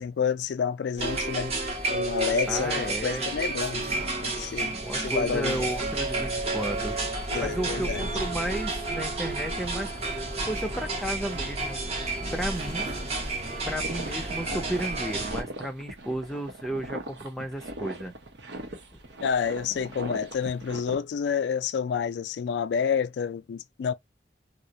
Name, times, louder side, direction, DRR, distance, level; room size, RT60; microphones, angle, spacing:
voice 1, 0.0-1.5 1.9-3.9 4.2-5.7 7.3-8.0 19.2-23.9, left 6 dB, 75° left, 0.3 m, -29 dB
sound 1, 1.0-15.4, right 2 dB, 35° right, 0.6 m, -31 dB
voice 2, 2.5-3.3 4.7-7.0 7.4-9.9 10.4-11.8 12.3-12.9 13.7-18.1, right 1 dB, ahead, 0.5 m, -33 dB
sound 2, 13.8-21.0, right 1 dB, 80° right, 0.7 m, -39 dB
2.3 x 2.0 x 2.7 m
head